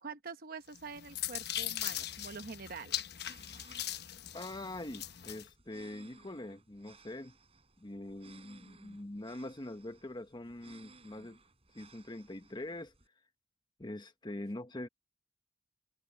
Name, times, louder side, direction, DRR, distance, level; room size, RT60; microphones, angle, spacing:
voice 1, 0.0-3.1, right 5 dB, 50° right, 1.0 m, -45 dB
sound 1, 0.7-5.5, left 11 dB, 60° left, 1.1 m, -40 dB
sound 2, 3.1-13.1, right 3 dB, 30° right, 7.3 m, -61 dB
voice 2, 4.3-7.4 7.8-11.4 11.7-12.9 13.8-14.9, left 1 dB, 25° left, 1.0 m, -43 dB
head